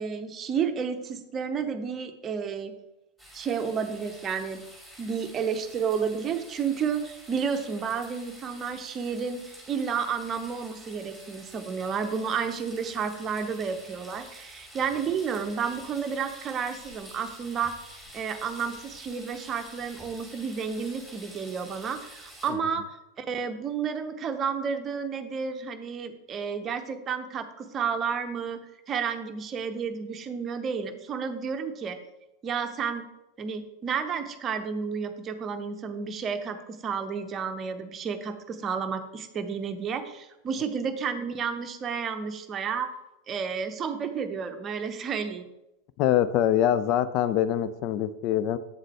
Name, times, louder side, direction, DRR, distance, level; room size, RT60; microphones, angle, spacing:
voice 1, 0.0-2.7 3.3-4.6 5.0-9.4 9.7-17.7 18.1-22.8 23.2-28.6 28.9-32.0 32.4-33.1 33.4-36.6 36.8-42.9 43.3-45.5, right 6 dB, 25° right, 8 dB, 0.7 m, -31 dB
sound 1, 3.2-22.5, equal, 5° left, 2.3 m, -48 dB
voice 2, 46.0-48.6, left 11 dB, 40° left, 14 dB, 0.4 m, -24 dB
8.2 x 7.3 x 3.3 m, 0.93 s
figure-of-eight pair, 90°, 0 cm